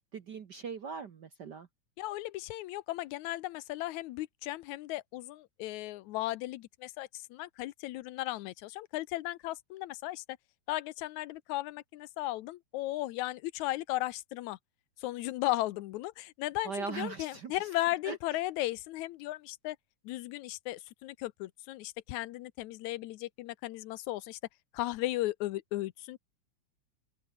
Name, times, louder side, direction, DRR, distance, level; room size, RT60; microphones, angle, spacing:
voice 1, 0.1-1.7 16.6-17.7 18.0-18.2, right 5 dB, 55° right, 1.2 m, -40 dB
voice 2, 2.0-10.2 10.7-14.6 15.0-19.8 20.1-24.4 24.7-26.2, left 16 dB, 85° left, 2.1 m, -36 dB
open air
omnidirectional pair, 3.3 m